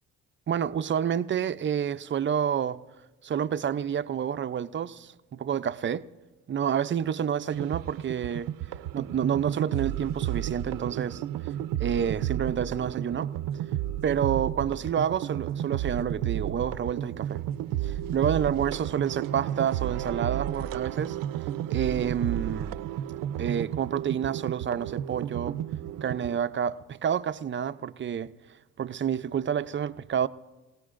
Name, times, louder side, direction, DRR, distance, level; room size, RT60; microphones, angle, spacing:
voice 1, 0.5-2.8 3.2-6.1 6.5-8.5 8.9-11.2 11.8-13.3 14.0-17.4 17.8-21.2 21.7-22.8 23.4-25.6 26.0-28.3 28.8-30.3, right 8 dB, 35° right, 0.5 m, -29 dB
sound 1, 7.5-26.4, right 11 dB, 80° right, 0.6 m, -32 dB
27.5 x 17.5 x 2.5 m
cardioid pair, 85°, 32 cm